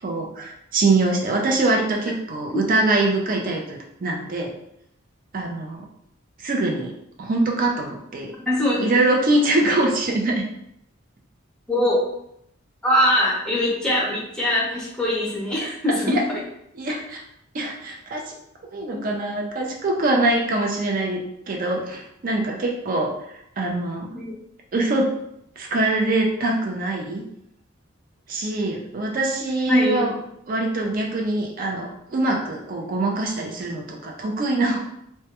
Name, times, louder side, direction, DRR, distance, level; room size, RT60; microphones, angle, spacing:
voice 1, 0.0-4.5 5.3-5.8 6.4-6.9 7.2-8.3 8.8-10.4 16.1-16.2 16.8-17.2 17.5-18.3 18.7-23.1 23.6-24.1 24.7-25.1 25.6-27.2 28.3-30.1 30.5-34.8, right 2 dB, 45° right, 0 dB, 0.4 m, -23 dB
voice 2, 8.4-8.8 11.7-12.0 12.8-16.4 18.9-19.0 24.1-24.3 29.7-30.2, left 1 dB, 5° left, -5 dB, 0.6 m, -22 dB
2.2 x 2.2 x 2.8 m, 0.76 s
head